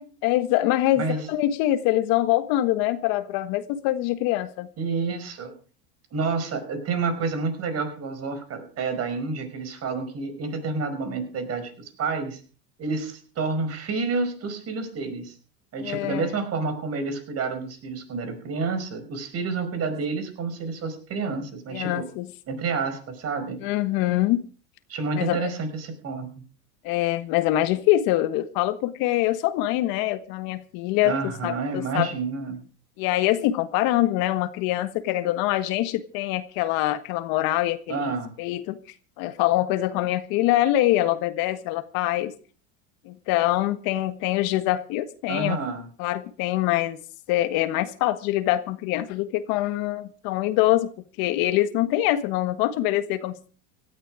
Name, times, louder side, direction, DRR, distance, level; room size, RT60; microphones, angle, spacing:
voice 1, 0.0-4.7 15.8-16.3 21.7-22.3 23.6-24.5 25.1-25.5 26.8-32.1 33.0-38.0 38.4-38.8 39.2-42.3 43.1-45.6 46.0-47.0 47.3-50.9 51.2-53.4, left 15 dB, 55° left, 11 dB, 1.6 m, -24 dB
voice 2, 4.8-5.5 6.1-12.4 12.8-15.3 15.7-22.1 22.5-23.6 24.9-26.3 31.0-32.6 37.9-38.3 45.3-45.9, right 4 dB, 35° right, 8 dB, 5.2 m, -29 dB
17.5 x 13.0 x 5.0 m, 0.40 s
supercardioid pair, 135°, 43 cm